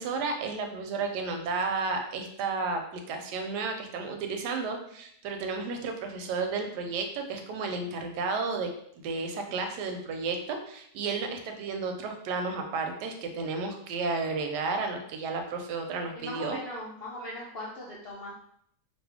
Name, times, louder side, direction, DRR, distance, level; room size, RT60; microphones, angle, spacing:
voice 1, 0.0-8.7 9.0-16.6, right 4 dB, 90° right, 4 dB, 1.2 m, -32 dB
voice 2, 16.1-18.3, left 1 dB, 65° left, -6 dB, 0.6 m, -39 dB
2.7 x 2.5 x 3.4 m, 0.69 s
omnidirectional pair, 1.7 m